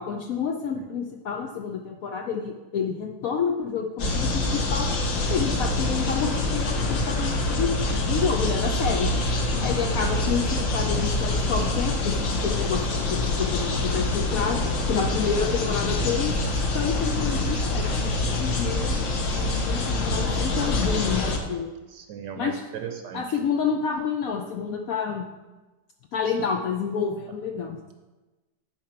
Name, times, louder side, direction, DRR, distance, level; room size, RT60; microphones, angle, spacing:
voice 1, 0.0-4.9 5.3-9.1 9.6-12.8 13.1-16.3 16.7-18.1 18.4-19.0 19.4-21.7 22.4-22.6 23.1-25.3 26.1-27.9, left 6 dB, 70° left, 3 dB, 0.8 m, -29 dB
sound 1, 4.0-21.4, left 2 dB, 55° left, 1.2 m, -25 dB
voice 2, 21.9-23.4, right 7 dB, 80° right, 5 dB, 1.3 m, -37 dB
10.5 x 4.5 x 4.4 m, 1.1 s
omnidirectional pair, 1.9 m